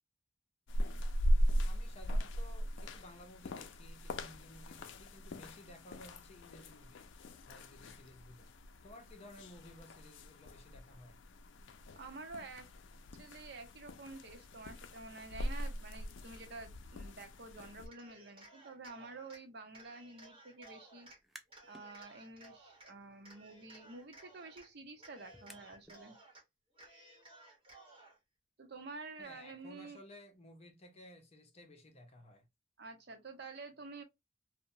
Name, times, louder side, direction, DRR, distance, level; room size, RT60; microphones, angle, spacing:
sound 1, 0.7-17.9, equal, 90° left, 0.4 m, -39 dB
voice 1, 1.6-8.5 8.8-11.2 29.2-32.5, left 1 dB, 35° left, 0.6 m, -56 dB
voice 2, 11.9-12.7 13.1-21.1 21.7-26.2 28.6-30.0 32.8-34.0, right 3 dB, 65° right, 0.7 m, -49 dB
Cheering, 17.9-19.4 19.7-21.2 21.5-22.9 23.2-24.7 25.0-26.4 26.7-28.2, right 2 dB, 30° right, 1.1 m, -58 dB
sound 2, 21.2-21.9 22.3-26.0, equal, ahead, 0.3 m, -60 dB
2.8 x 2.1 x 2.6 m
head